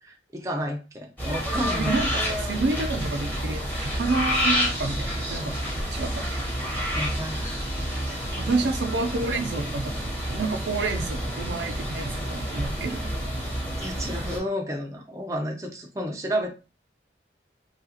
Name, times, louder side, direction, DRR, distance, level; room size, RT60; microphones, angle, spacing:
voice 1, 0.0-2.0 6.9-7.6 8.0-8.2 13.8-16.5, equal, 15° right, 1 dB, 0.4 m, -31 dB
sound 1, 1.2-14.4, equal, 10° left, 0.8 m, -29 dB
voice 2, 1.8-5.6 5.9-6.4 8.4-13.3, right 3 dB, 85° right, 5 dB, 0.5 m, -29 dB
2.8 x 2.3 x 2.8 m, 0.31 s
head